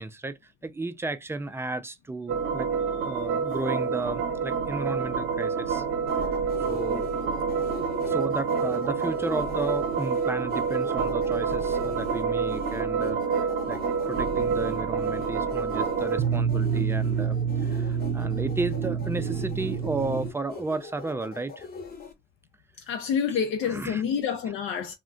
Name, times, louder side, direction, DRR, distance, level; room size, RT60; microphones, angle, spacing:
voice 1, 0.0-2.7 3.1-6.1 6.7-7.1 8.0-17.4 17.6-21.7 23.6-24.0, right 2 dB, 10° right, 0.3 m, -33 dB
sound 1, 2.3-20.3, right 6 dB, 70° right, 0.6 m, -27 dB
sound 2, 6.1-22.1, left 5 dB, 50° left, 0.8 m, -41 dB
voice 2, 22.9-24.9, left 7 dB, 80° left, 0.5 m, -28 dB
2.4 x 2.1 x 3.6 m
cardioid pair, 90°, 20 cm